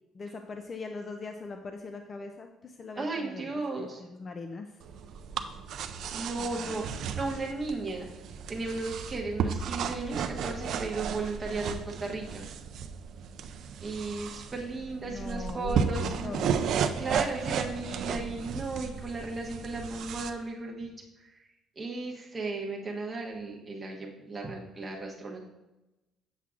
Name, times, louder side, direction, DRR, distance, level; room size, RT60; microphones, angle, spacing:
voice 1, 0.1-4.8 6.4-6.8 15.1-16.6, left 3 dB, 25° left, 5 dB, 0.3 m, -41 dB
voice 2, 3.0-4.0 6.1-6.9 7.1-8.1 8.5-12.4 13.8-16.3 17.0-20.9 21.2-21.3 21.8-25.4, right 3 dB, 20° right, 0 dB, 0.9 m, -35 dB
sound 1, 4.8-20.3, right 7 dB, 55° right, 0.4 m, -34 dB
7.3 x 7.0 x 2.4 m, 0.99 s
cardioid pair, 165°, 0 cm